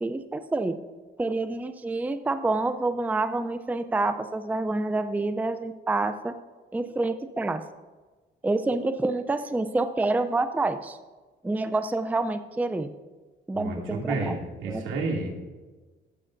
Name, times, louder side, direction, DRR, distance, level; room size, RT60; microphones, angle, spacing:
voice 1, 0.0-0.8 1.2-6.4 6.7-7.6 8.4-11.0 11.4-12.9 13.5-14.3 14.6-14.8, right 2 dB, 10° right, 9 dB, 0.5 m, -27 dB
voice 2, 13.5-15.3, right 3 dB, 80° right, -2 dB, 2.5 m, -30 dB
15.5 x 7.5 x 2.6 m, 1.3 s
cardioid pair, 90°, 20 cm